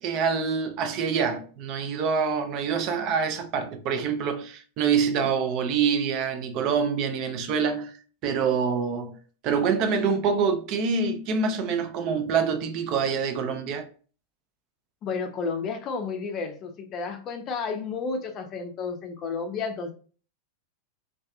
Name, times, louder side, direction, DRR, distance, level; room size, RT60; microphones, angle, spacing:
voice 1, 0.0-7.9 8.2-9.2 9.4-13.9, right 6 dB, 40° right, 0.4 m, -26 dB
voice 2, 15.0-19.9, left 4 dB, 35° left, 0.4 m, -31 dB
2.4 x 2.3 x 2.4 m
figure-of-eight pair, 90°, 0 cm